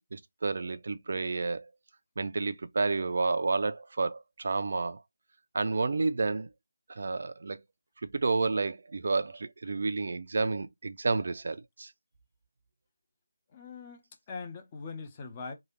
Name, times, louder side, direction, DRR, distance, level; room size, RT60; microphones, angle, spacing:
voice 1, 0.1-1.7 2.2-5.0 5.5-6.5 6.9-7.6 8.1-11.9, right 3 dB, 45° right, 0.4 m, -30 dB
voice 2, 13.5-14.0 14.3-15.5, left 4 dB, 20° left, 0.6 m, -41 dB
3.1 x 2.3 x 3.0 m
figure-of-eight pair, 160°, 0 cm